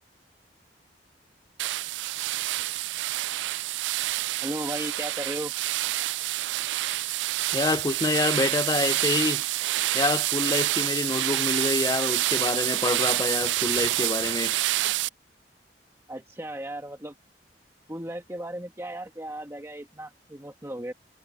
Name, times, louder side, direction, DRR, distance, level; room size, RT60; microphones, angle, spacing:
sound 1, 1.6-15.1, right 16 dB, 85° right, 0.3 m, -27 dB
voice 1, 4.4-5.5 16.1-17.1 17.9-20.9, right 1 dB, 15° right, 1.3 m, -35 dB
voice 2, 7.5-9.4 9.9-14.6, left 3 dB, 20° left, 0.4 m, -27 dB
head